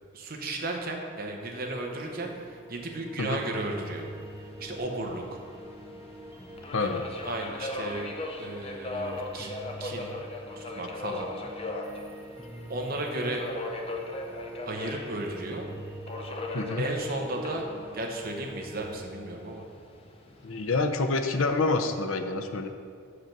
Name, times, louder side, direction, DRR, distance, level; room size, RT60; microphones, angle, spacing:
voice 1, 0.1-4.1 4.6-5.4 7.2-9.5 9.8-10.1 10.6-11.3 12.7-13.4 14.7-15.7 16.8-17.7 17.9-19.7, right 2 dB, 45° right, 2 dB, 0.9 m, -34 dB
sound 1, 1.5-19.0, right 1 dB, 10° right, 0.6 m, -45 dB
Subway metro underground, 3.6-22.0, left 2 dB, 30° left, 0.6 m, -40 dB
voice 2, 6.7-7.0 16.5-16.8 20.4-22.7, left 3 dB, 80° left, 7 dB, 0.6 m, -27 dB
6.5 x 5.0 x 5.9 m, 2.4 s
head